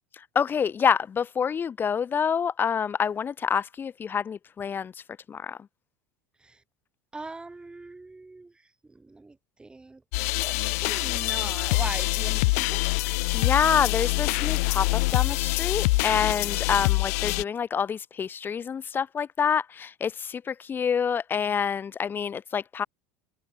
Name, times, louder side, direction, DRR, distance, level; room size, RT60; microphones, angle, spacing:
voice 1, 0.3-4.9 5.3-5.6 13.3-22.9, left 7 dB, 25° left, 1.2 m, -27 dB
voice 2, 7.1-8.5 8.9-10.0 10.4-12.8, right 3 dB, 10° right, 6.3 m, -40 dB
sound 1, 10.1-17.4, left 25 dB, 80° left, 0.5 m, -25 dB
supercardioid pair, 125°, 8 cm